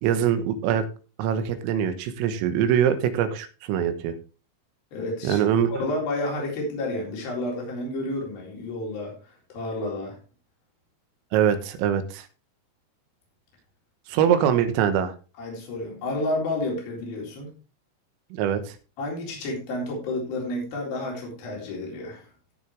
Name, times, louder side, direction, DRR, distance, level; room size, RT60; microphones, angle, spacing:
voice 1, 0.0-0.9 1.2-4.1 5.2-5.7 11.3-12.3 14.1-15.1 18.3-18.8, right 9 dB, 85° right, 10 dB, 3.8 m, -23 dB
voice 2, 4.9-9.1 9.5-10.2 14.2-14.3 15.4-17.5 19.0-22.3, left 2 dB, 50° left, -1 dB, 5.3 m, -30 dB
15.5 x 6.8 x 3.4 m, 0.33 s
omnidirectional pair, 6.0 m